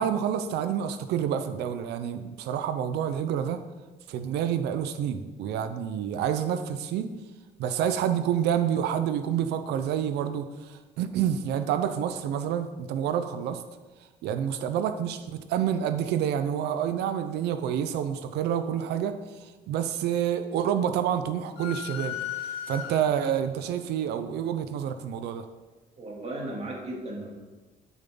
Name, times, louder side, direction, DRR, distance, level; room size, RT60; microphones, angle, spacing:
voice 1, 0.0-3.6 4.1-7.1 7.6-13.6 14.2-19.2 19.4-22.2 22.7-25.5, right 9 dB, 80° right, 9 dB, 0.8 m, -28 dB
sound 1, 21.6-23.4, left 11 dB, 90° left, 1.1 m, -36 dB
voice 2, 26.0-27.4, right 1 dB, 40° right, -2 dB, 3.1 m, -36 dB
12.5 x 7.4 x 3.9 m, 1.2 s
cardioid pair, 110°, 17 cm